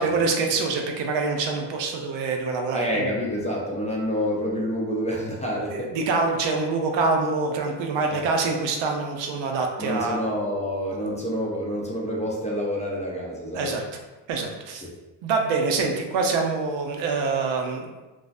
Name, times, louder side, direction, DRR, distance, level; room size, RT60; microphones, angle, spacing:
voice 1, 0.0-3.1 5.7-10.2 13.5-13.8 14.3-14.8 15.2-17.9, right 4 dB, 75° right, 2 dB, 0.6 m, -25 dB
voice 2, 2.7-6.0 8.1-8.3 9.8-13.8 14.7-14.9, equal, 15° left, -3 dB, 0.4 m, -28 dB
2.5 x 2.1 x 2.4 m, 1.2 s
cardioid pair, 80°, 46 cm